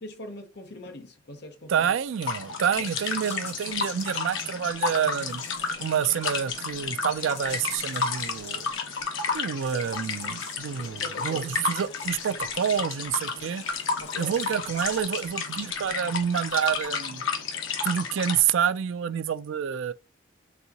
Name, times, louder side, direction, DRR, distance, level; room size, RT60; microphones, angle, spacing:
voice 1, 0.0-1.9 9.7-10.3 10.8-11.5 13.3-13.5 14.0-14.4, left 1 dB, 55° left, 0.8 m, -42 dB
voice 2, 1.7-5.4 5.8-8.7 9.3-13.6 14.2-17.2 17.8-19.9, right 8 dB, 75° right, 0.3 m, -28 dB
sound 1, 2.2-18.4, left 5 dB, 80° left, 1.0 m, -32 dB
sound 2, 2.8-16.2 16.5-16.8, left 4 dB, 35° left, 1.7 m, -47 dB
4.1 x 3.5 x 2.8 m
head